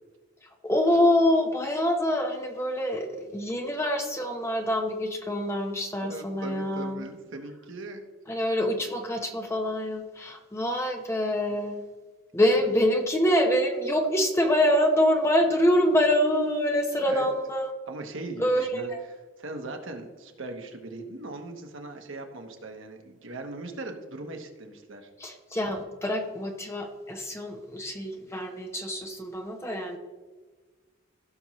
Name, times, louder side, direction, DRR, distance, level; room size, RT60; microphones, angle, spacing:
voice 1, 0.4-7.1 8.3-11.8 12.3-17.7 18.4-19.0 25.2-30.0, equal, 10° left, 3 dB, 0.9 m, -25 dB
voice 2, 6.0-8.1 11.5-11.6 17.1-17.3 17.9-18.9 19.4-25.1, right 2 dB, 65° right, 4 dB, 1.1 m, -39 dB
16.0 x 6.1 x 3.1 m, 1.3 s
head